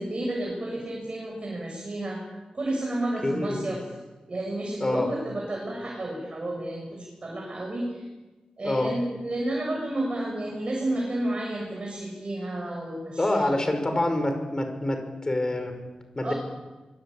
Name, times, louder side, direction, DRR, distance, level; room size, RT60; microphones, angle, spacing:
voice 1, 0.0-2.2 2.5-3.8 4.3-8.1 8.6-13.5 16.2-16.3, right 1 dB, 40° right, 0 dB, 7.0 m, -31 dB
voice 2, 3.2-3.7 4.8-5.1 8.6-8.9 13.2-15.8 16.2-16.3, left 1 dB, 25° left, 6 dB, 5.6 m, -26 dB
24.5 x 22.5 x 8.8 m, 1.2 s
wide cardioid pair, 125°, 3 cm